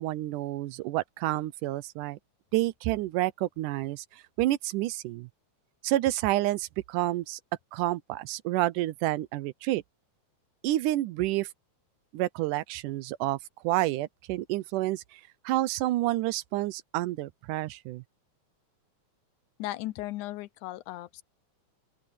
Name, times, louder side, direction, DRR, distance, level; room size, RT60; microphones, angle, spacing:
voice 1, 0.0-2.2 2.5-5.3 5.8-7.4 7.7-9.8 10.6-11.5 12.1-13.4 13.6-15.2 15.5-18.0, right 16 dB, 90° right, 2.3 m, -29 dB
voice 2, 19.6-21.2, left 16 dB, 80° left, 2.1 m, -36 dB
open air
omnidirectional pair, 3.5 m